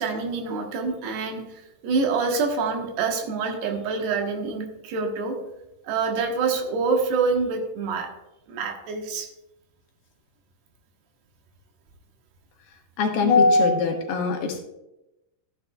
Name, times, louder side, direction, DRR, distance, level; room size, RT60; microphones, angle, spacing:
voice 1, 0.0-5.4 5.8-8.1 8.5-9.3, right 4 dB, 80° right, 2 dB, 3.4 m, -26 dB
voice 2, 13.0-14.6, left 3 dB, 75° left, 3 dB, 2.9 m, -20 dB
14.0 x 9.6 x 2.3 m, 0.91 s
omnidirectional pair, 4.7 m